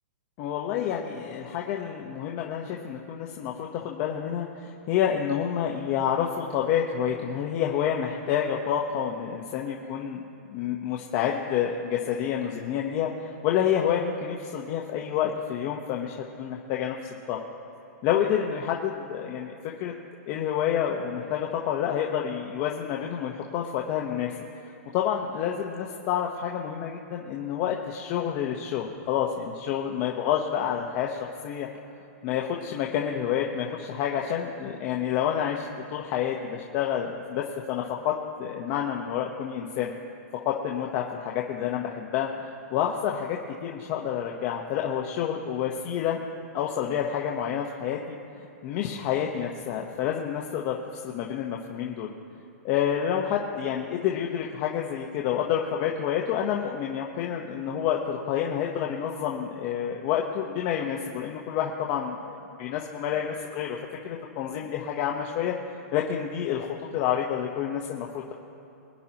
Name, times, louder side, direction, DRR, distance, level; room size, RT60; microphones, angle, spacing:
voice 1, 0.4-10.2 10.5-17.0 17.3-17.4 18.0-19.9 20.3-24.3 24.9-31.7 32.2-39.9 40.4-46.2 46.5-48.0 48.6-50.8 51.0-52.1 52.6-63.8 64.0-65.5 65.9-68.3, left 9 dB, 35° left, -1 dB, 1.1 m, -28 dB
24.0 x 11.0 x 3.0 m, 2.9 s
hypercardioid pair, 150°, 8 cm